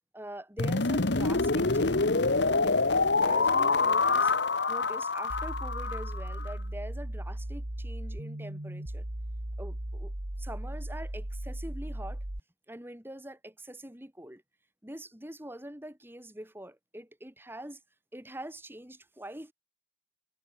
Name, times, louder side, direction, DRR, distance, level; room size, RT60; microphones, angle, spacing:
voice 1, 0.1-4.3 4.7-9.0 9.6-10.1 10.4-12.2 12.7-14.4 14.8-17.8 18.1-19.5, right 1 dB, 10° right, 2.6 m, -44 dB
sound 1, 0.6-6.5, left 3 dB, 60° left, 1.3 m, -26 dB
sound 2, 5.3-12.4, right 1 dB, 55° right, 2.3 m, -37 dB
head